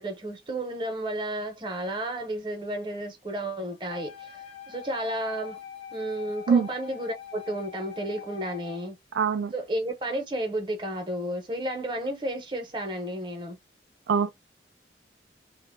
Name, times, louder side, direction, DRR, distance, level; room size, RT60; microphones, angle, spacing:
voice 1, 0.0-4.3 4.7-5.6 5.9-9.0 9.5-13.6, right 1 dB, 25° right, 0.7 m, -32 dB
Wind instrument woodwind instrument, 3.9-8.9, left 8 dB, 30° left, 0.6 m, -43 dB
voice 2, 9.1-9.5 14.1-14.3, right 6 dB, 85° right, 0.3 m, -22 dB
2.9 x 2.0 x 3.5 m
head